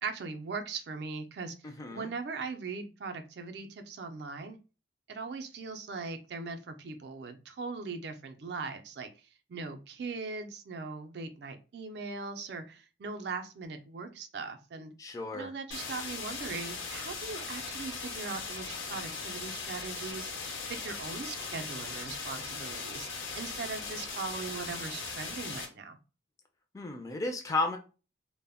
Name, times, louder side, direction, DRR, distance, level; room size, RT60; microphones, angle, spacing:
voice 1, 0.0-1.5 1.9-4.6 5.1-9.1 9.5-14.9 15.3-23.1 23.3-26.0, right 4 dB, 60° right, 7 dB, 0.4 m, -40 dB
voice 2, 1.6-2.1 15.0-15.5 26.7-27.8, left 3 dB, 15° left, 4 dB, 0.3 m, -33 dB
sound 1, 15.7-25.6, left 4 dB, 85° left, 0.8 m, -39 dB
2.1 x 2.0 x 3.4 m, 0.33 s
head